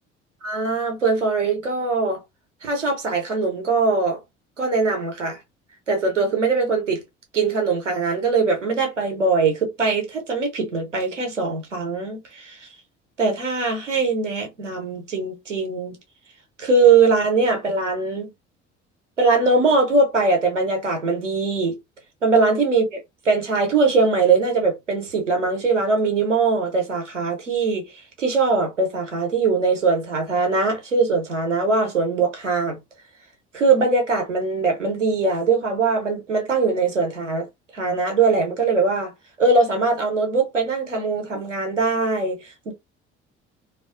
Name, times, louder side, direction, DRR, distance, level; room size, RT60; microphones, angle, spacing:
voice 1, 0.4-2.2 2.6-4.2 4.6-5.4 5.9-7.0 7.3-12.7 13.2-16.0 16.6-18.3 19.2-21.8 22.2-32.8 33.5-37.5 37.7-39.1 39.4-42.7, right 4 dB, 90° right, 0.8 m, -21 dB
2.3 x 2.2 x 2.4 m
figure-of-eight pair, 50°, 36 cm